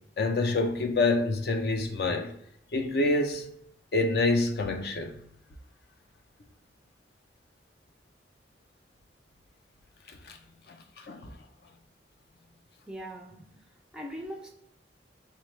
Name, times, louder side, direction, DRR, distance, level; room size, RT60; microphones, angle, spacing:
voice 1, 0.2-2.3 2.7-3.5 3.9-5.2 10.3-10.4 10.7-10.8 11.1-11.3, left 2 dB, 55° left, 0.4 m, -27 dB
voice 2, 12.9-13.5 13.9-14.5, equal, 5° right, 0.4 m, -40 dB
4.0 x 2.2 x 3.0 m
head